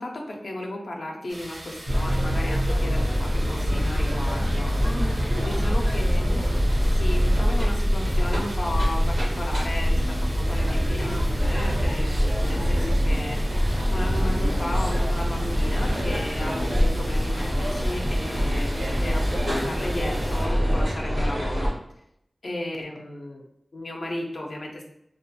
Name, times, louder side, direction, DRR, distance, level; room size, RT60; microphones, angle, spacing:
voice 1, 0.0-4.7 5.4-6.4 6.9-21.7 22.4-23.4 23.7-24.8, left 1 dB, 75° left, 0 dB, 0.4 m, -34 dB
sound 1, 1.3-20.5, right 1 dB, 60° right, 0.6 m, -42 dB
sound 2, 1.9-21.7, equal, 90° right, 0.8 m, -24 dB
sound 3, 3.7-20.9, equal, 10° left, 0.4 m, -37 dB
2.3 x 2.1 x 2.7 m, 0.77 s
cardioid pair, 45°, 0 cm